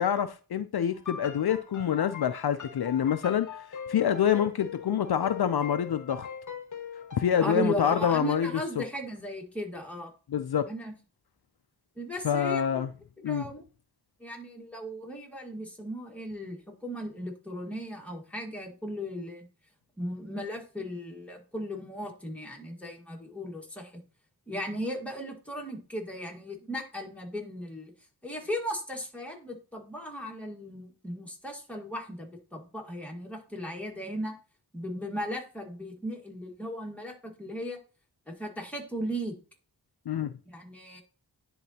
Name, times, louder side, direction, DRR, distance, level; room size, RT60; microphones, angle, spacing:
voice 1, 0.0-6.3 7.1-8.5 8.8-8.9 10.3-10.7 12.2-12.9 13.2-13.4 40.1-40.3, left 9 dB, 65° left, 0.5 m, -26 dB
sound 1, 0.9-7.5, left 7 dB, 45° left, 0.9 m, -41 dB
voice 2, 7.4-10.1 10.7-10.9 11.9-12.9 13.2-13.6 14.2-19.5 20.0-24.0 24.5-27.9 28.2-34.3 34.7-37.8 38.3-39.4 40.5-41.0, equal, 5° left, 1.7 m, -36 dB
10.0 x 3.8 x 2.8 m
wide cardioid pair, 70°, 41 cm